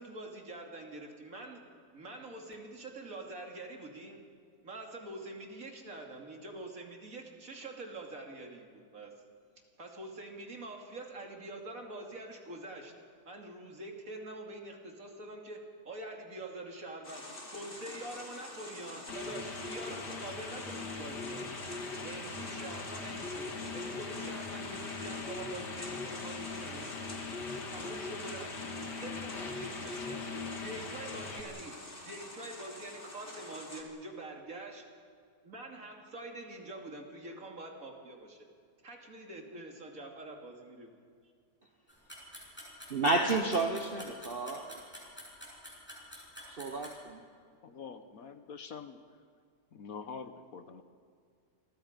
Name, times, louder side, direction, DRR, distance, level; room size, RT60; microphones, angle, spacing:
voice 1, 0.0-1.6 1.9-4.2 4.6-9.2 9.8-12.9 13.2-17.2 17.5-21.5 22.0-23.5 23.7-26.9 27.7-28.6 28.9-30.2 30.5-31.8 32.0-34.8 35.4-38.5 38.8-40.9, right 2 dB, 55° right, 1 dB, 3.0 m, -45 dB
sound 1, 17.0-33.8, left 2 dB, 30° left, 2.9 m, -48 dB
sound 2, 19.1-31.4, left 3 dB, 85° left, 2.4 m, -40 dB
sound 3, 41.9-47.0, equal, 5° left, 7.2 m, -47 dB
voice 2, 42.9-44.8 46.5-47.2, right 3 dB, 35° right, 3 dB, 1.3 m, -31 dB
voice 3, 47.6-49.0 49.7-50.8, left 6 dB, 60° left, 9 dB, 1.4 m, -45 dB
28.5 x 22.5 x 5.2 m, 2.2 s
omnidirectional pair, 1.8 m